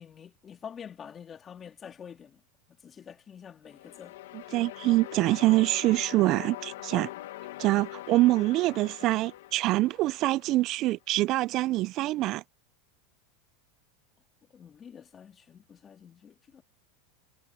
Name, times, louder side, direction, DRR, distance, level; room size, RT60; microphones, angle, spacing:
voice 1, 0.0-2.4 2.8-4.1 14.5-16.6, left 7 dB, 25° left, 3.1 m, -47 dB
sound 1, 3.6-10.7, left 16 dB, 80° left, 1.5 m, -43 dB
voice 2, 4.3-7.1 7.6-12.4, right 17 dB, 45° right, 0.4 m, -25 dB
supercardioid pair, 120°, 0 cm